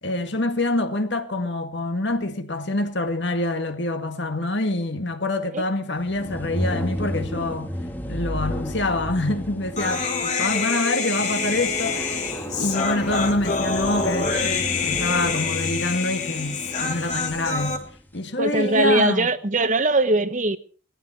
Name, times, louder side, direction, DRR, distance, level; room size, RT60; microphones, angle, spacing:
voice 1, 0.0-7.7 8.1-12.2 12.6-17.8 18.1-19.3, left 2 dB, 60° left, 2.1 m, -26 dB
sound 1, 6.0-18.0, equal, 10° left, 1.6 m, -33 dB
Human voice, 9.8-17.8, left 4 dB, 35° left, 3.0 m, -26 dB
voice 2, 18.4-20.6, right 2 dB, 40° right, 1.0 m, -21 dB
19.0 x 14.0 x 4.5 m
head